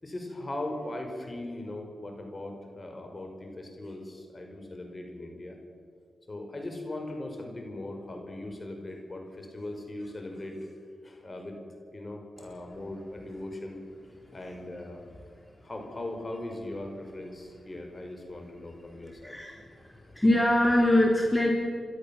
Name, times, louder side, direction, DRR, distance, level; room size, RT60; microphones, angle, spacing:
voice 1, 0.0-5.6 6.3-10.7 11.0-11.6 11.9-13.8 14.3-15.0 15.6-19.6, left 1 dB, 35° left, 3 dB, 5.3 m, -39 dB
voice 2, 19.2-21.5, left 1 dB, 15° left, -1 dB, 3.8 m, -24 dB
30.0 x 12.5 x 7.2 m, 2.2 s
supercardioid pair, 45°, 0 cm